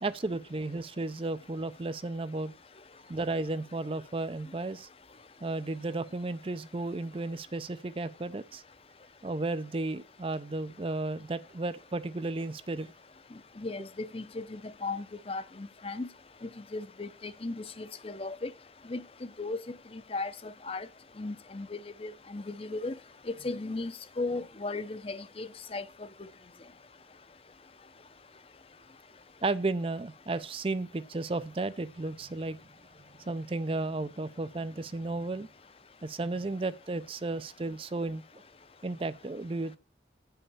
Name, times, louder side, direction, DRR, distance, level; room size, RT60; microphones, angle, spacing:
voice 1, 0.0-2.5 3.1-4.9 5.4-8.6 9.2-12.9 29.4-32.6 33.3-35.5 36.0-38.4 38.8-39.8, right 2 dB, 30° right, 0.5 m, -33 dB
voice 2, 13.6-16.1 16.4-18.5 18.9-19.0 19.4-19.7 20.1-20.9 21.2-23.0 23.4-25.8, left 3 dB, 35° left, 0.6 m, -36 dB
9.7 x 5.7 x 6.9 m
head